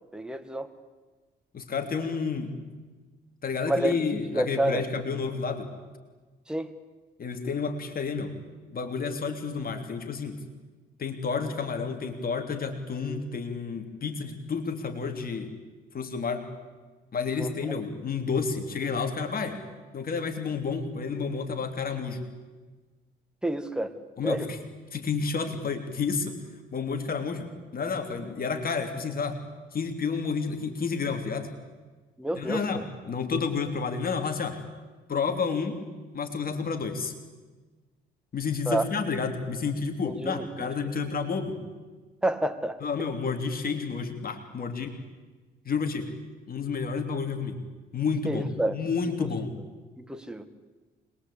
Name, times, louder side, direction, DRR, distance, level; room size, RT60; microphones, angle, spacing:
voice 1, 0.1-0.7 3.7-4.8 6.5-6.7 17.4-17.8 23.4-23.9 24.2-24.5 32.2-32.9 38.7-38.9 40.0-40.9 42.2-42.8 48.3-48.8 49.2-49.3 50.0-50.4, right 1 dB, 5° right, 8 dB, 2.0 m, -29 dB
voice 2, 1.5-2.6 3.4-5.7 7.2-8.4 8.7-10.4 11.0-15.5 15.9-16.4 17.1-19.6 19.9-22.2 24.2-24.6 24.9-26.4 26.7-29.4 29.7-31.5 32.3-34.6 35.1-35.8 36.1-37.1 38.3-41.6 42.8-44.9 45.6-46.1 46.5-47.6 47.9-49.5, left 5 dB, 50° left, 6 dB, 3.2 m, -30 dB
26.0 x 22.0 x 8.6 m, 1.3 s
cardioid pair, 90°, 20 cm